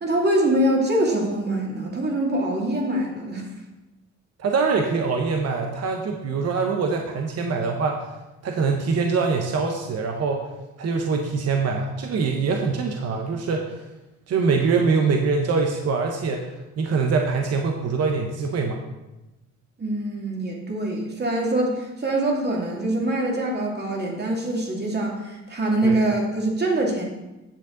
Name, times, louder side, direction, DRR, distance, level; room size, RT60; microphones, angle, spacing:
voice 1, 0.0-3.4 19.8-27.0, right 1 dB, 35° right, -1 dB, 2.5 m, -24 dB
voice 2, 4.4-8.1 8.4-10.5 10.8-13.8 14.3-18.8 25.8-26.0, right 4 dB, 55° right, 3 dB, 1.0 m, -24 dB
8.8 x 7.3 x 3.9 m, 1.0 s
cardioid pair, 90°, 30 cm